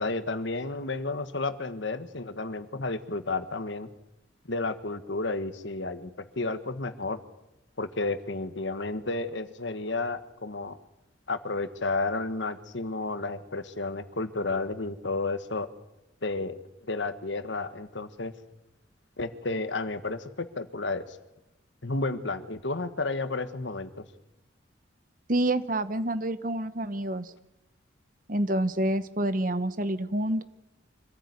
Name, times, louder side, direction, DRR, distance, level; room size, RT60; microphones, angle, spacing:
voice 1, 0.0-3.9 4.5-7.2 7.8-10.8 11.3-15.7 16.2-16.6 16.9-18.3 19.2-21.2 21.8-24.0, left 3 dB, 70° left, 12 dB, 1.5 m, -32 dB
voice 2, 25.3-27.3 28.3-30.4, right 1 dB, 45° right, 13 dB, 1.2 m, -28 dB
25.5 x 15.0 x 9.6 m, 0.91 s
head